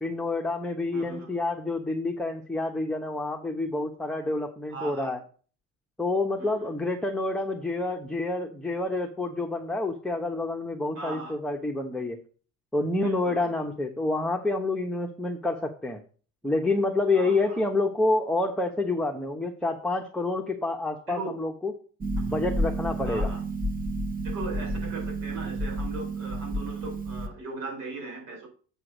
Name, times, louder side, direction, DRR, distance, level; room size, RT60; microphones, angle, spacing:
voice 1, 0.0-5.2 6.0-12.2 12.7-16.0 16.4-21.7 22.3-23.3, left 2 dB, ahead, 1 dB, 1.1 m, -28 dB
voice 2, 0.9-1.3 4.7-5.1 6.4-6.7 10.9-11.3 13.0-13.5 17.1-17.6 21.1-21.3 22.2-22.3 23.0-23.4 24.2-28.5, right 3 dB, 85° right, -1 dB, 4.7 m, -38 dB
Harp, 22.0-27.3, right 1 dB, 25° right, 1.2 m, -30 dB
7.9 x 4.8 x 6.1 m, 0.41 s
supercardioid pair, 95°, 37 cm